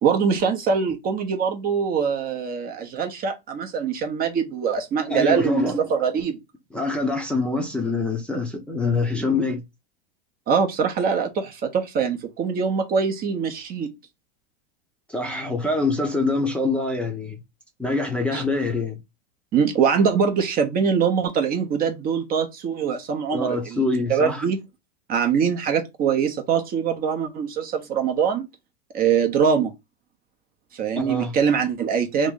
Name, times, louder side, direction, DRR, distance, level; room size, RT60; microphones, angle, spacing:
voice 1, 0.0-6.4 10.5-13.9 18.3-18.4 19.5-23.8 24.1-24.6 25.1-28.5 28.9-29.7 30.7-32.3, right 6 dB, 30° right, 0.7 m, -23 dB
voice 2, 5.1-5.9 6.7-9.6 15.1-17.4 17.8-19.0 23.3-24.4 31.0-31.4, left 3 dB, 5° left, 0.7 m, -25 dB
3.1 x 2.6 x 3.7 m
supercardioid pair, 125°, 30 cm